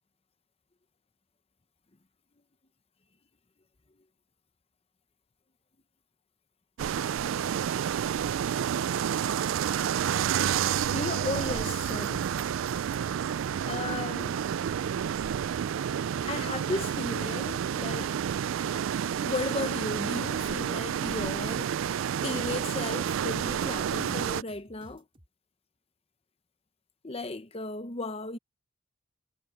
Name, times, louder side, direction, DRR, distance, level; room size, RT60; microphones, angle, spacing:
sound 1, 6.8-24.4, right 8 dB, 65° right, 0.3 m, -30 dB
voice 1, 10.9-12.3 13.7-14.4 16.2-18.2 19.2-21.7 22.2-25.0 27.0-28.4, left 3 dB, 30° left, 1.0 m, -35 dB
sound 2, 13.5-15.1 15.5-16.5 16.8-17.2 17.5-17.8 18.1-20.5 20.8-21.8 22.1-22.5 22.8-23.1 23.5-25.3, equal, 30° right, 5.1 m, -55 dB
head